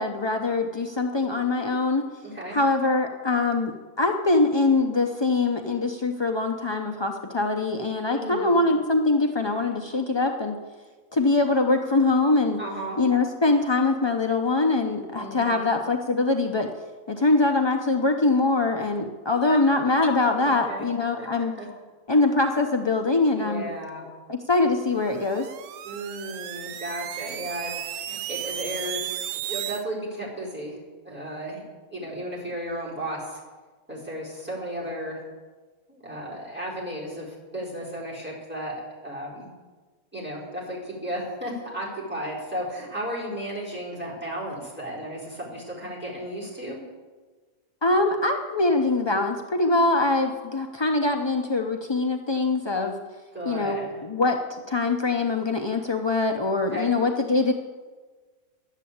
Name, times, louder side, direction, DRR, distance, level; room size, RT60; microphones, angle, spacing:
voice 1, 0.0-2.0 2.5-10.6 11.1-12.6 13.0-16.7 17.1-21.5 22.1-23.7 24.3-25.5 47.8-53.0 53.5-57.5, left 3 dB, 40° left, 4 dB, 0.3 m, -23 dB
voice 2, 2.2-2.6 8.1-8.6 12.6-13.0 15.2-15.7 19.5-19.6 20.4-20.8 21.2-21.7 23.3-24.0 25.8-29.1 29.5-30.8 31.0-31.6 31.9-33.4 33.9-35.2 35.9-38.7 39.0-39.5 40.1-46.8 53.3-54.0 56.7-56.9, right 1 dB, 5° right, -5 dB, 4.4 m, -34 dB
sound 1, 25.0-29.8, right 12 dB, 85° right, 1.1 m, -34 dB
11.0 x 8.3 x 8.5 m, 1.3 s
omnidirectional pair, 1.5 m